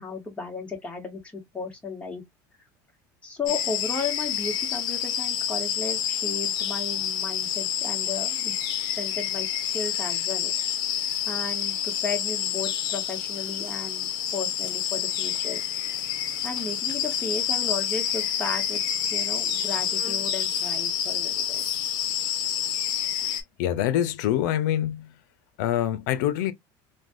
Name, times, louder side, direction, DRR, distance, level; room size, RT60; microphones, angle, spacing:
voice 1, 0.0-2.2 3.2-8.5 8.9-10.5 11.3-15.6 16.4-18.8 19.1-21.6, left 4 dB, 15° left, 1.1 m, -34 dB
sound 1, 3.5-23.4, left 9 dB, 50° left, 0.8 m, -28 dB
voice 2, 23.6-25.1 25.6-26.5, left 11 dB, 85° left, 0.5 m, -25 dB
3.2 x 2.2 x 2.5 m
supercardioid pair, 135°, 10 cm